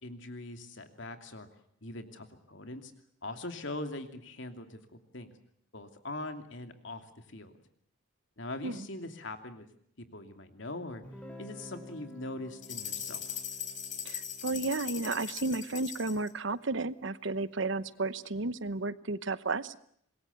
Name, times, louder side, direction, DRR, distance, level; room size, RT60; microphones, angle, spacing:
voice 1, 0.0-1.5 1.8-2.9 3.2-5.3 5.7-7.6 8.4-9.7 10.0-11.0 11.4-13.2, left 2 dB, 60° left, 7 dB, 2.8 m, -42 dB
Guitar, 11.0-16.8, equal, 5° left, 3.6 m, -52 dB
sound 1, 12.6-16.3, left 9 dB, 40° left, 3.7 m, -39 dB
voice 2, 14.0-19.8, right 3 dB, 65° right, 15 dB, 0.9 m, -33 dB
26.0 x 21.5 x 8.2 m, 0.67 s
head